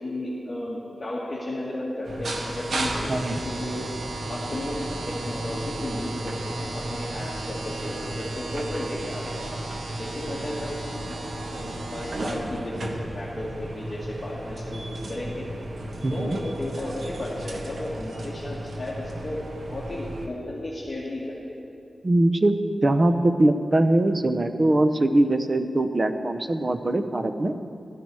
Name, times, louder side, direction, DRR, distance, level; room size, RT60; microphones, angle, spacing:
voice 1, 0.0-3.8 4.3-9.5 10.0-11.0 11.4-15.5 16.1-19.4 19.7-21.6, left 1 dB, 25° left, -8 dB, 2.3 m, -34 dB
sound 1, 2.0-20.3, right 1 dB, 70° right, 1.4 m, -34 dB
voice 2, 3.1-3.4 16.0-16.4 22.0-22.5 22.8-27.5, right 1 dB, 35° right, 8 dB, 0.8 m, -22 dB
16.0 x 12.5 x 4.8 m, 2.4 s
wide cardioid pair, 125°, 0 cm